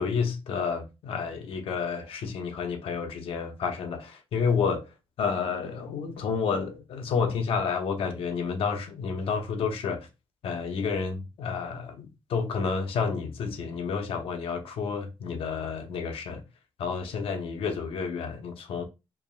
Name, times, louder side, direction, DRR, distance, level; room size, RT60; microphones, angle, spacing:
voice 1, 0.0-10.1 10.4-16.4 16.8-18.8, left 5 dB, 85° left, 0.9 m, -30 dB
4.8 x 3.1 x 2.4 m
wide cardioid pair, 135°, 9 cm